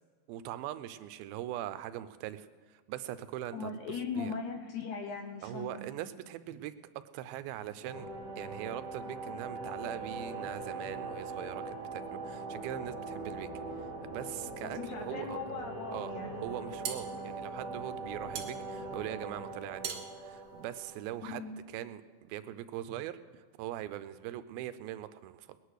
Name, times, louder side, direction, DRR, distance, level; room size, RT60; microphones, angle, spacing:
voice 1, 0.3-4.3 5.4-13.5 13.8-15.4 15.9-16.1 16.4-25.6, right 12 dB, 90° right, 13 dB, 2.5 m, -41 dB
voice 2, 3.5-5.8 14.6-16.5 21.2-21.5, left 5 dB, 65° left, 5 dB, 2.1 m, -39 dB
sound 1, 7.8-21.4, right 3 dB, 30° left, 5.9 m, -41 dB
sound 2, 16.5-21.4, right 7 dB, 65° right, 2.7 m, -43 dB
20.0 x 10.0 x 6.4 m, 1.5 s
omnidirectional pair, 4.2 m